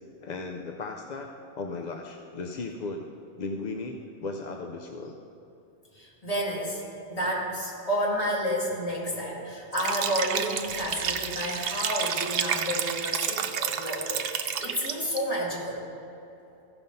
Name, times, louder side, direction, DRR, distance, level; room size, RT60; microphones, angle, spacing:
voice 1, 0.2-3.1 3.4-5.1, left 3 dB, 50° left, 3 dB, 0.6 m, -36 dB
voice 2, 6.0-6.8 7.1-15.8, equal, 30° left, -4 dB, 2.1 m, -30 dB
Liquid, 9.7-15.2, right 7 dB, 65° right, 0.8 m, -30 dB
15.0 x 5.7 x 5.4 m, 2.9 s
omnidirectional pair, 1.2 m